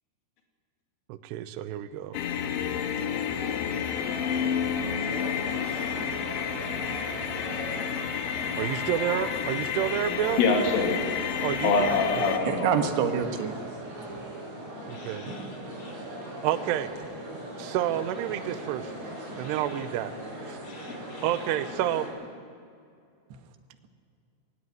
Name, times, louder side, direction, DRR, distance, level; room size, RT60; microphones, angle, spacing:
voice 1, 1.1-2.2 8.6-10.4 11.4-12.3 14.9-15.3 16.4-16.9 17.6-18.9 19.3-20.1 20.5-20.6 21.2-22.1, right 12 dB, 85° right, 2.5 m, -29 dB
sound 1, 2.1-12.4, left 8 dB, 75° left, 3.2 m, -31 dB
sound 2, 2.7-22.1, right 1 dB, 35° right, 5.7 m, -39 dB
voice 2, 10.4-11.0 11.6-12.7 14.9-15.4 15.8-15.9 19.4-19.5 20.7-21.2, left 4 dB, 90° left, 4.9 m, -26 dB
voice 3, 12.4-14.2 23.3-23.4, right 7 dB, 70° right, 3.0 m, -28 dB
19.0 x 17.0 x 9.4 m
omnidirectional pair, 5.6 m